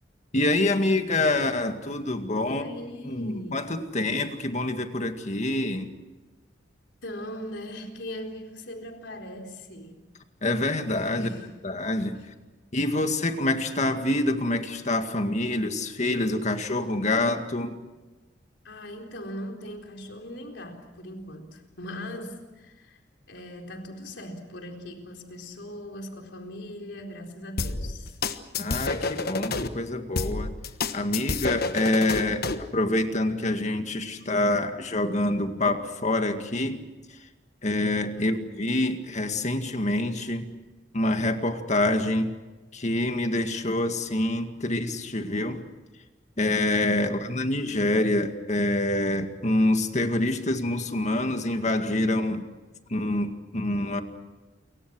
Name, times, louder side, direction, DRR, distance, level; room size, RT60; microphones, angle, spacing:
voice 1, 0.3-2.7 3.0-5.9 10.4-11.3 11.6-12.1 12.7-17.8 28.6-30.5 30.9-36.8 37.1-37.2 37.6-40.5 40.9-42.3 42.7-45.6 46.4-52.5 52.9-54.0, left 1 dB, 40° left, 7 dB, 2.0 m, -26 dB
voice 2, 2.4-3.6 7.0-10.0 11.1-11.6 18.6-23.0 23.3-28.2 38.1-38.6 47.0-47.1, left 1 dB, 75° left, 3 dB, 4.1 m, -40 dB
sound 1, 27.6-29.7 30.2-32.7, left 3 dB, 55° left, 1.3 m, -29 dB
29.0 x 24.0 x 6.4 m, 1.2 s
head